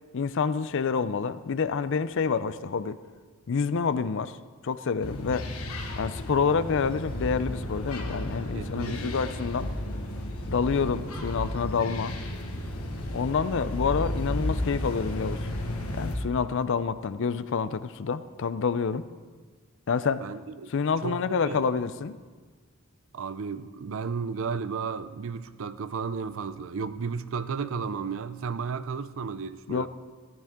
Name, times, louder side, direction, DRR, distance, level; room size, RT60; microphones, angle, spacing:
voice 1, 0.1-3.0 3.5-4.3 4.6-5.5 6.0-9.7 10.5-12.1 13.1-15.4 15.9-19.0 19.9-20.2 20.7-22.2 29.7-29.9, left 5 dB, 60° left, 0.5 m, -28 dB
sound 1, 5.0-16.2, left 1 dB, 80° left, 1.3 m, -33 dB
voice 2, 8.5-9.2 20.2-20.7 21.0-21.6 23.1-29.9, right 5 dB, 65° right, 0.5 m, -33 dB
14.0 x 13.5 x 3.6 m
head